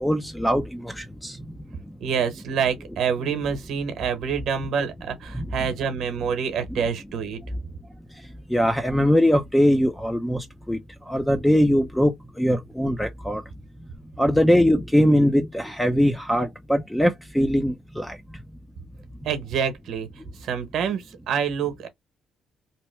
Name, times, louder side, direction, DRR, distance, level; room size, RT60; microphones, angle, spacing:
voice 1, 0.0-1.6 1.9-2.0 5.3-5.5 8.1-10.8 11.0-13.4 14.2-18.4, equal, 5° left, 0.4 m, -22 dB
voice 2, 2.0-7.4 19.2-20.1 20.4-21.9, right 7 dB, 75° right, 0.9 m, -27 dB
2.9 x 2.1 x 3.1 m
cardioid pair, 90°, 0 cm